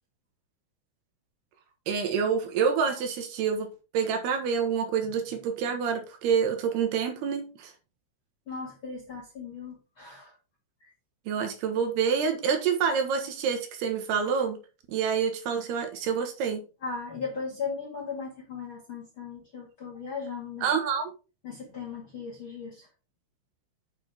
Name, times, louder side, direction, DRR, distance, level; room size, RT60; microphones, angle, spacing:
voice 1, 1.9-3.7 3.9-7.7 11.3-14.6 14.9-16.6 20.6-21.1, right 6 dB, 75° right, 3.3 m, -27 dB
voice 2, 8.5-10.4 10.8-10.9 16.8-20.7 21.4-22.9, left 5 dB, 45° left, 1.8 m, -37 dB
9.5 x 6.2 x 3.5 m
omnidirectional pair, 5.0 m